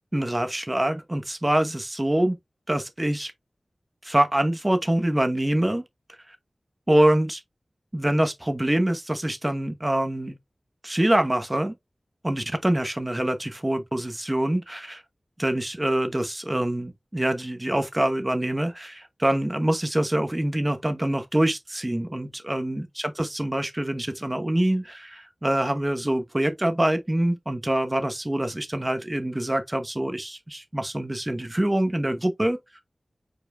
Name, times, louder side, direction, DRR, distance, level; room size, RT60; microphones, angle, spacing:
voice 1, 0.1-2.4 2.7-3.3 4.0-5.8 6.3-6.4 6.9-7.4 7.9-10.4 10.8-11.8 12.2-15.0 15.4-32.8, right 1 dB, 20° right, 1.0 m, -25 dB
4.8 x 4.6 x 2.3 m
wide cardioid pair, 60°, 0 cm